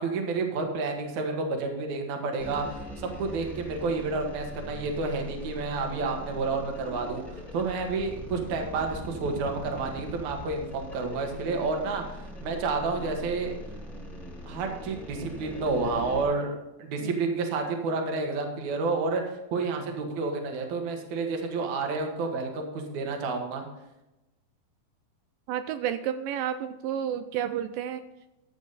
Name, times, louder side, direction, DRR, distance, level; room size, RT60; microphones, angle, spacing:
voice 1, 0.0-13.6 14.5-19.2 19.5-23.7, right 3 dB, 60° right, 3 dB, 2.6 m, -30 dB
sound 1, 2.4-16.3, equal, ahead, 1.5 m, -41 dB
voice 2, 25.5-28.0, right 9 dB, 80° right, 10 dB, 2.1 m, -31 dB
13.5 x 8.3 x 4.1 m, 0.95 s
omnidirectional pair, 4.4 m